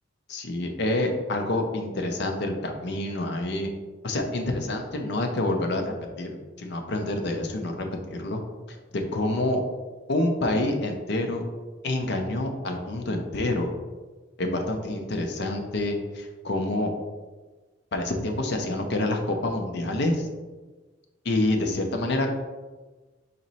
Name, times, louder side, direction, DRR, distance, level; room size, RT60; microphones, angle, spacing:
voice 1, 0.3-3.7 4.0-8.4 9.1-9.6 10.1-11.4 11.8-13.7 14.4-16.9 17.9-20.3 21.2-22.3, left 1 dB, 65° left, 4 dB, 0.6 m, -27 dB
4.2 x 3.0 x 4.1 m, 1.3 s
head